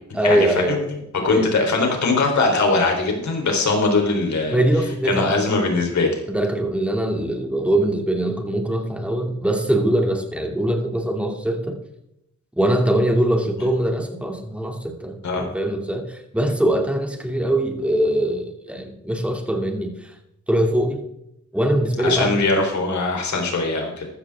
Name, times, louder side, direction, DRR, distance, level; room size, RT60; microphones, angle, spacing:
voice 1, 0.1-0.8 1.2-1.5 4.5-5.4 6.3-11.8 12.6-20.1 20.5-21.0 21.5-22.4, right 1 dB, 5° right, 3 dB, 2.6 m, -22 dB
voice 2, 1.2-4.6 5.1-6.2 15.2-15.4 22.0-24.1, left 3 dB, 70° left, 2 dB, 3.8 m, -21 dB
14.5 x 13.0 x 3.6 m, 0.82 s
cardioid pair, 90°, 29 cm